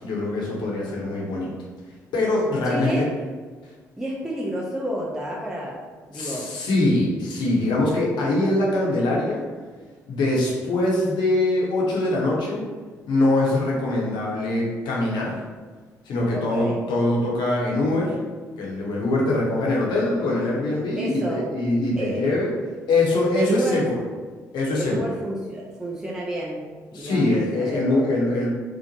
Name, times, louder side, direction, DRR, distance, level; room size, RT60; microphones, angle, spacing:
voice 1, 0.0-1.5 2.1-3.1 6.1-9.4 10.0-12.6 13.1-15.4 16.1-18.2 18.6-22.5 22.9-23.9 24.5-25.1 26.9-28.5, left 2 dB, 60° left, -4 dB, 0.8 m, -23 dB
voice 2, 2.6-3.1 4.0-6.6 16.3-16.8 20.9-21.5 21.9-22.4 23.4-23.9 24.8-28.2, equal, 5° right, -4 dB, 0.5 m, -30 dB
2.9 x 2.1 x 2.7 m, 1.4 s
hypercardioid pair, 45°, 9 cm